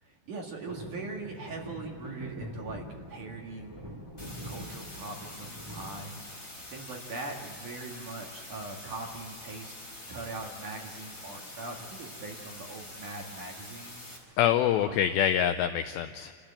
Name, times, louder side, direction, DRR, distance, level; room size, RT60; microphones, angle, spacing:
voice 1, 0.0-3.7 4.4-9.8 10.1-14.4 14.8-15.0, right 3 dB, 50° right, 0 dB, 2.8 m, -41 dB
sound 1, 0.6-6.8 7.3-7.9 9.1-9.6 9.8-9.9 10.2-10.5 11.3-12.3 12.7-12.8, equal, 10° right, 1.7 m, -44 dB
sound 2, 4.2-14.2, left 1 dB, 10° left, 4.0 m, -45 dB
voice 2, 14.4-16.3, left 10 dB, 90° left, 8 dB, 2.4 m, -25 dB
28.5 x 14.0 x 8.8 m, 2.4 s
omnidirectional pair, 5.7 m